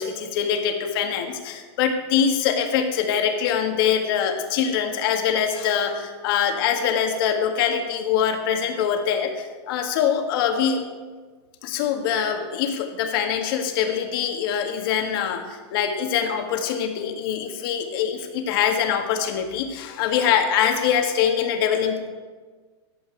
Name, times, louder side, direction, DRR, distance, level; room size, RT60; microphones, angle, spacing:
voice 1, 0.0-10.8 11.6-22.1, left 8 dB, 50° left, 4 dB, 1.8 m, -23 dB
15.0 x 9.9 x 4.7 m, 1.4 s
supercardioid pair, 155°, 15 cm